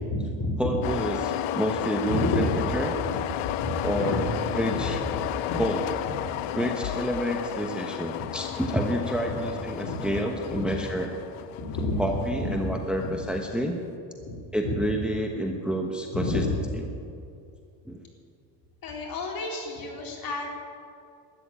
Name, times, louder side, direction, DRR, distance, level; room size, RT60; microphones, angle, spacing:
voice 1, 0.1-0.8 2.1-2.6 3.0-3.2 3.6-4.4 4.7-5.2 5.5-5.6 6.0-6.1 9.2-9.4 9.8-10.1 10.5-10.7 11.6-13.1 14.3-14.8 16.1-16.6 18.8-20.5, left 2 dB, 45° left, -1 dB, 4.0 m, -30 dB
voice 2, 0.6-2.9 3.8-4.3 4.6-5.0 5.6-5.8 6.6-11.1 12.0-13.8 14.5-16.4 17.9-18.0, equal, ahead, 2 dB, 1.1 m, -29 dB
sound 1, 0.8-13.5, left 12 dB, 70° left, 0.9 m, -33 dB
12.5 x 9.8 x 9.9 m, 2.5 s
supercardioid pair, 110°, 48 cm